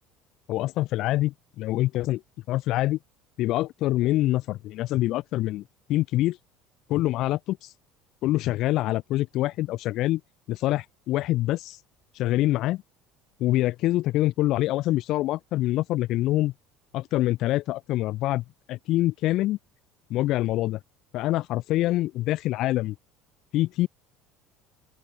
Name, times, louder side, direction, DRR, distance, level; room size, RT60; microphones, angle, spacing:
voice 1, 0.5-2.2 2.5-3.0 3.4-5.6 5.9-6.4 6.9-7.7 8.2-10.2 10.5-11.8 12.2-12.8 13.4-16.5 16.9-19.6 20.1-20.8 21.1-23.0 23.5-23.9, left 16 dB, 60° left, 0.8 m, -25 dB
open air
supercardioid pair, 105°, 0 cm